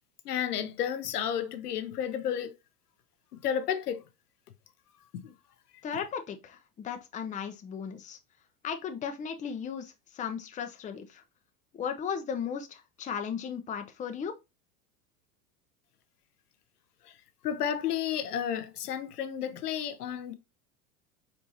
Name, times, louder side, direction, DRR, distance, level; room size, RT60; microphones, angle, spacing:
voice 1, 0.2-2.5 3.4-4.0 5.2-5.3 17.1-17.2 17.4-20.3, left 9 dB, 80° left, 0.7 m, -32 dB
voice 2, 5.8-8.2 8.6-9.9 10.2-11.1 11.8-12.7 13.0-14.3, left 7 dB, 15° left, 0.6 m, -35 dB
4.4 x 4.3 x 2.7 m
hypercardioid pair, 90°, 46 cm